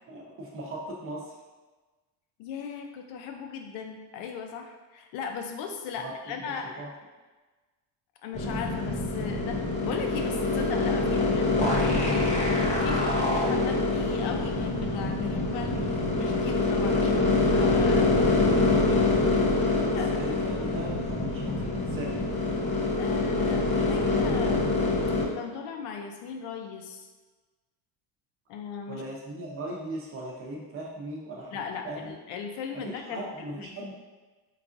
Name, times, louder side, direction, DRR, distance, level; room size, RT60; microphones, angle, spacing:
voice 1, 0.1-1.3 6.0-6.1 6.4-6.9 13.3-13.6 18.4-22.2 28.9-32.1 32.7-33.9, right 1 dB, 30° right, -3 dB, 0.7 m, -39 dB
voice 2, 2.4-6.8 8.2-12.2 12.8-18.5 20.0-20.2 23.0-24.8 25.3-27.1 28.5-29.0 31.5-33.8, left 6 dB, 70° left, 4 dB, 0.6 m, -38 dB
sound 1, 8.3-25.2, left 2 dB, 15° left, 0.4 m, -25 dB
4.7 x 2.4 x 2.5 m, 1.2 s
cardioid pair, 145°, 46 cm